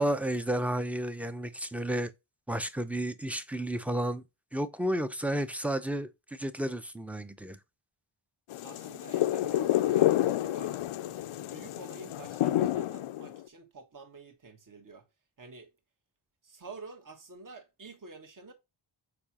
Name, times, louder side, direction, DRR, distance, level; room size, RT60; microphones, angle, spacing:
voice 1, 0.0-2.1 2.5-4.2 4.5-7.6, right 1 dB, 5° right, 0.6 m, -32 dB
sound 1, 8.5-13.4, left 13 dB, 85° left, 0.6 m, -29 dB
voice 2, 8.6-10.7 11.5-15.0 15.4-15.7 16.4-18.5, right 3 dB, 40° right, 1.4 m, -49 dB
6.9 x 4.8 x 2.9 m
wide cardioid pair, 85°, 48 cm